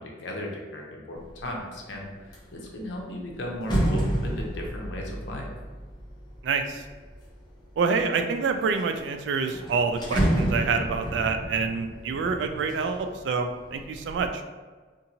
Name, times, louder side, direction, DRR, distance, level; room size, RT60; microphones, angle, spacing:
voice 1, 0.0-2.1 2.5-5.5, left 1 dB, 85° left, 0 dB, 0.6 m, -36 dB
sound 1, 1.2-1.6 2.0-7.3 7.9-8.6 9.0-9.1 9.3-13.3 13.6-14.3, right 1 dB, 25° left, 0.6 m, -30 dB
voice 2, 6.4-6.8 7.8-14.4, right 5 dB, 70° right, 6 dB, 0.3 m, -27 dB
2.6 x 2.5 x 2.8 m, 1.4 s
head